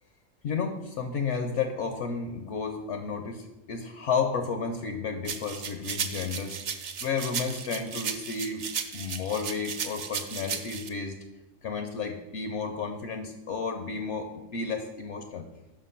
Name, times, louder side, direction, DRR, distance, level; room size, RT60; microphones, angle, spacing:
voice 1, 0.4-6.6 7.0-8.6 8.9-11.2 11.6-15.5, left 5 dB, 65° left, 6 dB, 0.9 m, -32 dB
sound 1, 5.3-10.9, right 7 dB, 65° right, 0.4 m, -35 dB
5.5 x 5.2 x 5.6 m, 1.0 s
omnidirectional pair, 1.4 m